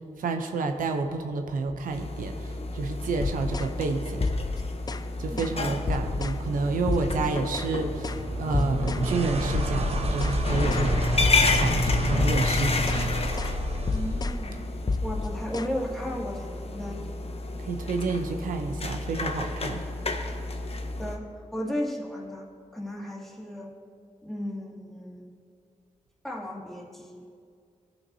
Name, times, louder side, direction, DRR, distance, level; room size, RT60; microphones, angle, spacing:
voice 1, 0.2-4.3 5.2-11.1 11.6-13.2 17.6-19.8, right 3 dB, 90° right, 5 dB, 0.5 m, -30 dB
sound 1, 1.9-21.2, left 3 dB, 45° left, 0.8 m, -31 dB
sound 2, 3.2-3.8 4.2-5.1 5.4-5.6 5.9-6.4 6.9-7.7 8.0-8.3 8.5-9.1 9.5-13.1 13.4-13.6 13.9-14.4 14.9-15.7, left 4 dB, 30° left, 0.3 m, -31 dB
sound 3, 6.4-14.3, right 1 dB, 50° right, 0.9 m, -30 dB
voice 2, 13.9-14.7 15.0-17.1 20.7-22.5 22.7-23.7 24.2-25.3 26.2-27.2, equal, ahead, -4 dB, 2.1 m, -35 dB
15.0 x 5.8 x 2.7 m, 2.3 s
cardioid pair, 50°, 14 cm